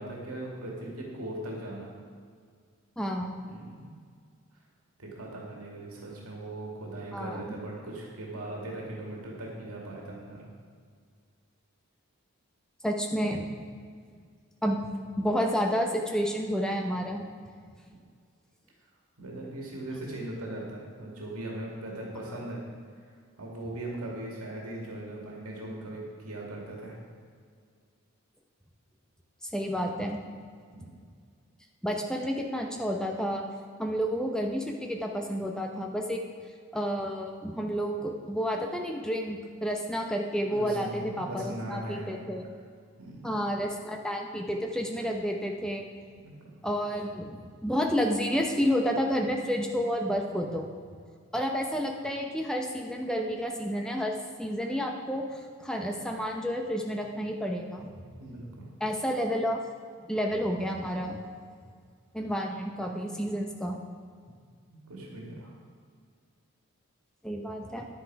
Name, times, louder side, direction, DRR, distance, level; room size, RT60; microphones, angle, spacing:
voice 1, 0.0-1.9 3.5-3.9 5.0-10.4 19.2-22.6 23.4-27.0 30.7-30.9 40.5-42.2 43.0-43.3 46.2-46.3 58.2-58.6 64.7-65.5, right 1 dB, 90° right, -2 dB, 2.4 m, -39 dB
voice 2, 3.0-3.3 7.1-7.6 12.8-13.5 14.6-14.8 15.2-17.3 29.4-30.2 31.8-33.4 33.8-36.2 36.7-42.5 43.2-45.9 46.6-47.3 47.6-50.7 51.3-57.9 58.8-59.6 60.1-61.2 62.1-63.8 67.2-67.9, equal, 5° left, 1 dB, 0.8 m, -30 dB
10.5 x 9.8 x 4.8 m, 2.1 s
head